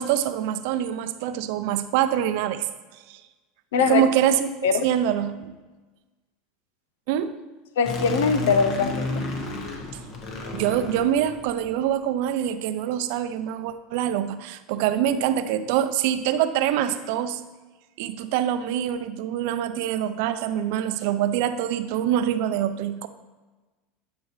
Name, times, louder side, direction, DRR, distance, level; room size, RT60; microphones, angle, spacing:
voice 1, 0.0-2.7 3.1-3.2 3.8-4.5 4.8-5.5 7.1-7.3 10.5-17.4 18.0-23.1, right 10 dB, 70° right, 11 dB, 0.5 m, -25 dB
voice 2, 3.7-4.0 4.6-4.8 7.8-9.3, left 6 dB, 90° left, 9 dB, 0.7 m, -22 dB
sound 1, 7.8-11.8, left 1 dB, 50° left, 1.4 m, -32 dB
10.0 x 6.0 x 3.2 m, 1.2 s
supercardioid pair, 120°, 0 cm